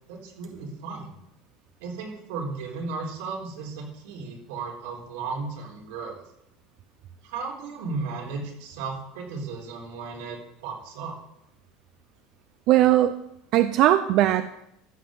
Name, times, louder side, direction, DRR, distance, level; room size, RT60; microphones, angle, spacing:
voice 1, 0.1-1.2 1.8-6.2 7.2-11.2, right 4 dB, 85° right, -1 dB, 4.1 m, -35 dB
voice 2, 12.7-13.1 13.5-14.5, right 13 dB, 45° right, 10 dB, 0.5 m, -19 dB
14.0 x 5.7 x 7.7 m, 0.80 s
cardioid pair, 170°, 0 cm